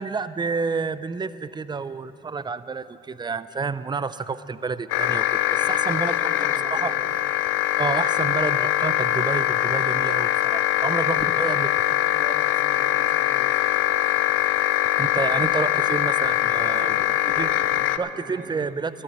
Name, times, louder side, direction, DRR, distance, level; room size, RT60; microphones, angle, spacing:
voice 1, 0.0-6.2 6.6-6.9 7.8-11.8 15.0-17.5 18.0-19.0, right 5 dB, 20° right, 15 dB, 0.4 m, -29 dB
sound 1, 4.9-18.0, left 13 dB, 90° left, 0.5 m, -22 dB
voice 2, 5.5-7.2 11.1-11.3 12.1-13.9 16.5-18.8, right 2 dB, 40° right, 2 dB, 1.9 m, -43 dB
13.5 x 8.0 x 8.8 m, 2.8 s
cardioid pair, 90°, 20 cm